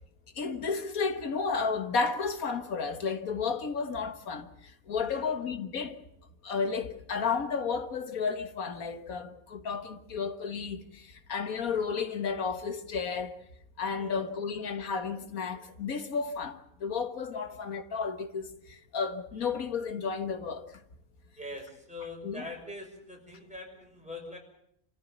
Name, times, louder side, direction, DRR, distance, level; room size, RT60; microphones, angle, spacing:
voice 1, 0.4-4.5 4.9-6.0 6.4-11.0 11.3-13.4 13.8-18.5 18.9-20.7 22.2-22.5, left 5 dB, 85° left, 1.9 m, -32 dB
voice 2, 21.4-24.4, left 2 dB, 5° right, 6.0 m, -43 dB
27.0 x 14.5 x 9.2 m
omnidirectional pair, 1.4 m